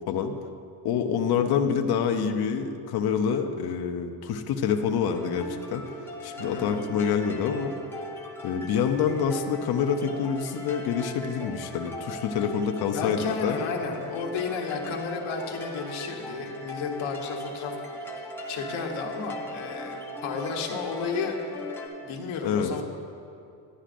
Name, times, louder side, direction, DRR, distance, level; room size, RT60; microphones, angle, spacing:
voice 1, 0.8-5.8 6.2-7.7 8.4-13.6 22.4-22.7, left 7 dB, 50° left, 4 dB, 0.6 m, -26 dB
sound 1, 5.1-21.9, left 1 dB, 5° left, 0.7 m, -39 dB
voice 2, 6.4-6.9 12.9-21.4 22.0-22.8, left 5 dB, 70° left, 1 dB, 1.2 m, -33 dB
11.5 x 10.0 x 2.5 m, 2.6 s
cardioid pair, 160°, 50 cm